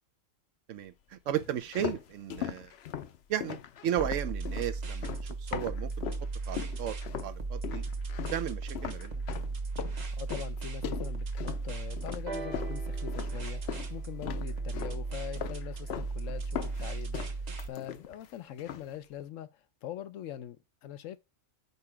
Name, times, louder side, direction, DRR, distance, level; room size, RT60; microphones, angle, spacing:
voice 1, 0.7-2.7 3.3-5.9 6.5-7.0 7.2-7.8 8.3-9.2, right 10 dB, 75° right, 0.9 m, -34 dB
sound 1, 1.4-6.3 6.6-7.3 7.6-13.9 14.2-15.0 15.4-16.1 16.4-18.3 18.6-18.9, left 9 dB, 60° left, 0.8 m, -39 dB
sound 2, 4.0-17.7, right 3 dB, 35° right, 0.9 m, -36 dB
voice 2, 10.2-19.5 19.8-21.2, left 11 dB, 80° left, 1.0 m, -43 dB
sound 3, 12.3-16.1 17.0-17.1, right 3 dB, 55° right, 1.3 m, -45 dB
6.8 x 4.2 x 4.9 m
omnidirectional pair, 1.3 m